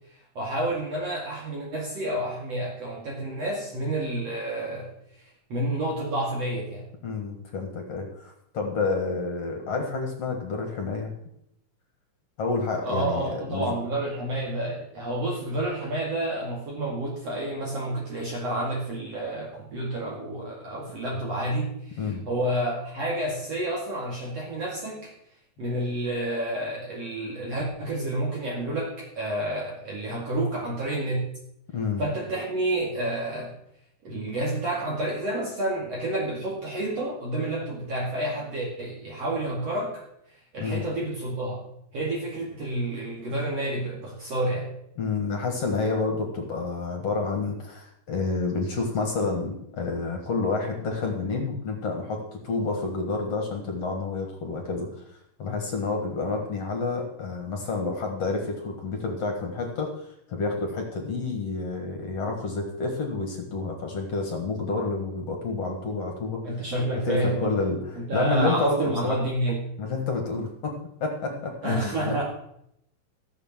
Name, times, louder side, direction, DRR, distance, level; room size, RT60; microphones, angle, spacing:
voice 1, 0.1-4.9 5.5-6.8 12.8-25.1 25.6-31.3 32.0-33.5 34.0-40.0 40.5-41.6 41.9-44.7 66.4-67.6 67.9-69.7 71.6-72.2, right 1 dB, 45° right, -2 dB, 3.0 m, -29 dB
voice 2, 7.0-11.1 12.4-13.7 22.0-22.2 31.7-32.0 40.6-40.8 45.0-55.0 55.4-66.4 66.9-68.8 69.0-69.1 69.8-70.7 71.0-72.1, left 3 dB, 50° left, 2 dB, 2.2 m, -29 dB
14.5 x 7.1 x 7.4 m, 0.75 s
omnidirectional pair, 4.3 m